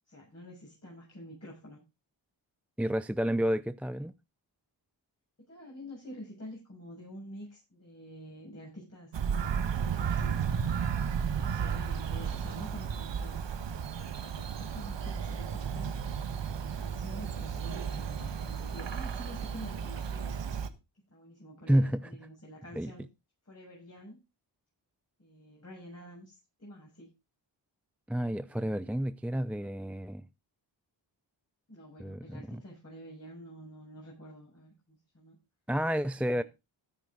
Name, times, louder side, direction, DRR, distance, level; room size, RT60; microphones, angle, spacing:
voice 1, 0.1-1.8 5.5-10.5 11.2-16.0 16.5-20.5 21.1-23.1 23.5-24.2 25.2-27.1 28.5-28.9 31.7-35.4 36.2-36.4, equal, 30° left, 7.5 m, -48 dB
voice 2, 2.8-4.1 21.7-22.1 22.8-22.9 28.1-30.2 32.0-32.6 35.7-36.4, equal, 5° right, 0.5 m, -30 dB
Bird vocalization bird call bird song, 9.1-20.7, right 7 dB, 65° right, 1.5 m, -33 dB
14.0 x 9.1 x 3.9 m
cardioid pair, 65°, 47 cm